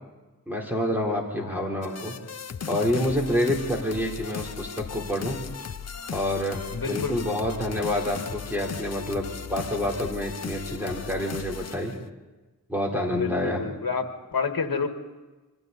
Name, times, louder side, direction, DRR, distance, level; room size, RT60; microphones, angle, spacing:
voice 1, 0.5-2.1 2.7-5.4 6.1-11.9 12.7-13.6, left 1 dB, 5° right, -1 dB, 3.7 m, -28 dB
voice 2, 1.4-1.7 6.7-7.3 13.1-14.9, left 5 dB, 60° left, 6 dB, 1.9 m, -30 dB
sound 1, 1.8-12.0, left 6 dB, 40° left, 0.7 m, -37 dB
26.5 x 23.5 x 4.1 m, 1.2 s
wide cardioid pair, 105°, 39 cm